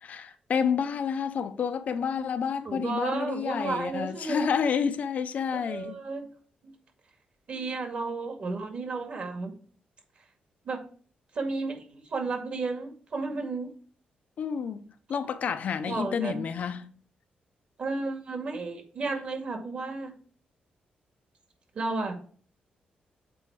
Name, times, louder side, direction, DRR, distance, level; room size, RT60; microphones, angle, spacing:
voice 1, 0.0-6.0 14.4-16.9, left 7 dB, 55° left, 0.6 m, -29 dB
voice 2, 2.7-4.5 5.5-6.3 6.6-6.7 7.5-9.5 10.6-10.8 11.3-13.7 15.8-16.4 17.8-20.1 21.7-22.2, right 3 dB, 45° right, 2.1 m, -33 dB
7.6 x 4.5 x 4.5 m
wide cardioid pair, 160°, 3 cm